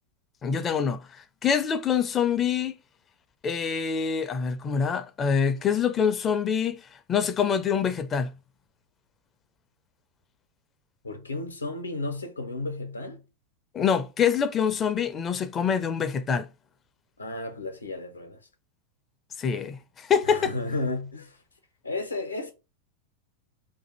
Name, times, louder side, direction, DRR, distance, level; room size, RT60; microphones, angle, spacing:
voice 1, 0.4-2.7 3.4-6.8 7.1-8.3 13.7-16.5 19.4-20.5, left 7 dB, 25° left, 0.4 m, -25 dB
voice 2, 11.0-13.2 17.2-18.4 20.2-21.4 21.8-22.5, left 2 dB, 80° left, 0.7 m, -33 dB
2.6 x 2.5 x 4.1 m
figure-of-eight pair, 90°, 0 cm